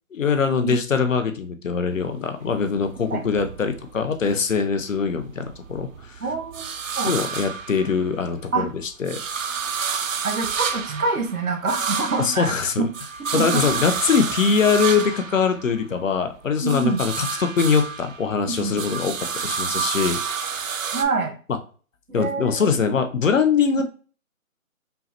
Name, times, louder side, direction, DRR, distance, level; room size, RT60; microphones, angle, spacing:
voice 1, 0.1-6.2 7.0-8.7 9.0-9.2 12.2-12.9 13.3-19.1 19.4-20.2 22.1-23.8, left 6 dB, 65° left, 7 dB, 0.7 m, -22 dB
sound 1, 1.9-4.3 4.7-8.4 8.7-16.2 16.5-21.0, right 6 dB, 65° right, 0.6 m, -30 dB
voice 2, 6.2-6.7 7.0-7.1 8.5-8.7 10.2-12.9 13.2-13.8 16.6-17.0 18.5-18.7 20.9-21.3 22.2-22.7, right 3 dB, 90° right, 4 dB, 1.3 m, -26 dB
5.4 x 2.1 x 2.8 m, 0.38 s
hypercardioid pair, 165°, 42 cm